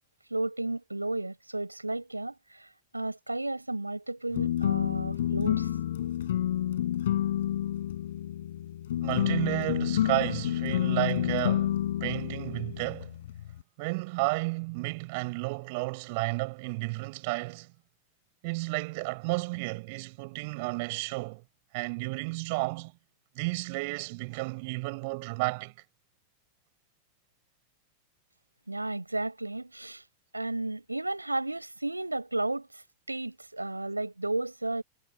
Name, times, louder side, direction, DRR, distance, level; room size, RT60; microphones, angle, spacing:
voice 1, 0.3-5.7 28.7-30.0 30.3-34.8, right 2 dB, 85° right, 6.0 m, -33 dB
sound 1, 4.3-13.6, left 11 dB, 60° left, 5.8 m, -29 dB
voice 2, 9.0-11.7 12.0-13.1 13.8-17.7 18.4-21.4 21.7-22.9 23.3-25.7, right 27 dB, 50° right, 7.3 m, -32 dB
figure-of-eight pair, 90°, 0 cm